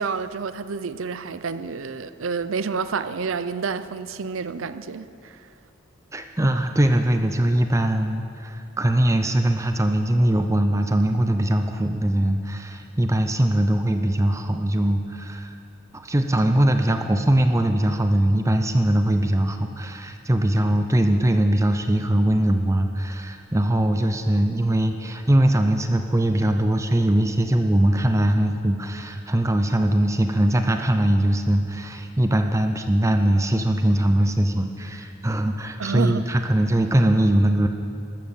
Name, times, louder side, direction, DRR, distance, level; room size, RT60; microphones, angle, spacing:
voice 1, 0.0-5.5 35.8-36.2, right 5 dB, 85° right, 13 dB, 0.6 m, -29 dB
voice 2, 6.1-15.5 15.9-37.7, right 1 dB, 15° right, 7 dB, 0.6 m, -21 dB
13.5 x 12.5 x 7.2 m, 2.5 s
head